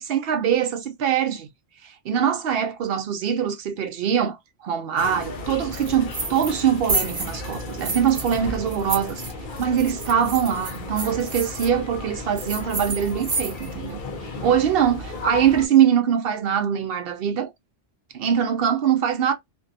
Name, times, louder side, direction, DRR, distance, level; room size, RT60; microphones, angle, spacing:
voice 1, 0.0-1.5 1.8-4.4 4.6-9.2 9.6-17.5 18.1-19.3, right 8 dB, 65° right, 0.7 m, -23 dB
sound 1, 5.0-15.7, left 2 dB, 55° left, 0.8 m, -35 dB
sound 2, 5.7-6.6 6.9-8.4 8.7-11.7 12.4-13.8, right 3 dB, 40° right, 0.8 m, -30 dB
2.6 x 2.2 x 2.5 m
omnidirectional pair, 1.1 m